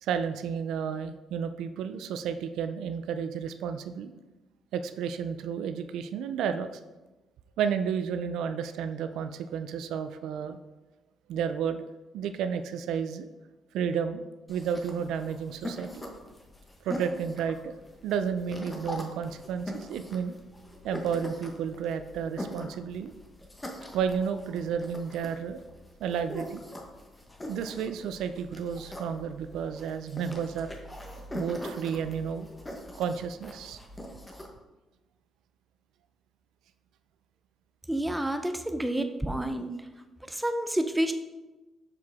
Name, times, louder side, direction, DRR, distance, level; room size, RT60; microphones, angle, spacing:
voice 1, 0.0-4.1 4.7-6.7 7.6-10.6 11.3-11.9 12.1-13.3 13.7-14.2 14.5-16.0 16.8-17.7 18.0-20.3 20.8-23.1 23.9-25.6 26.0-26.6 27.5-30.7 31.3-32.5 33.0-33.8, right 7 dB, 85° right, 10 dB, 0.4 m, -32 dB
sound 1, 14.5-34.5, equal, 15° left, 1.0 m, -42 dB
voice 2, 37.9-39.7 40.3-41.1, right 1 dB, 5° right, 7 dB, 0.6 m, -29 dB
6.5 x 4.7 x 3.5 m, 1.1 s
cardioid pair, 90°, 0 cm